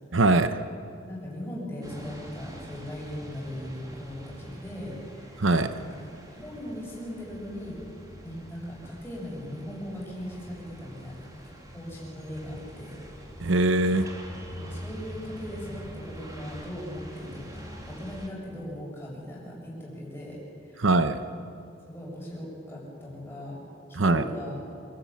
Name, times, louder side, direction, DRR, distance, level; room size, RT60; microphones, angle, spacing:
voice 1, 0.1-0.6 5.4-5.7 13.4-14.1 20.8-21.2 24.0-24.2, right 2 dB, 75° right, 10 dB, 0.9 m, -22 dB
voice 2, 1.1-5.4 5.8-5.9 6.3-7.8 8.2-11.3 11.7-13.0 14.4-20.9 21.3-21.4 21.9-23.6 23.9-24.6, equal, 10° left, -5 dB, 6.9 m, -39 dB
sound 1, 1.8-18.3, equal, 20° right, 2.7 m, -44 dB
27.0 x 14.0 x 8.5 m, 2.5 s
head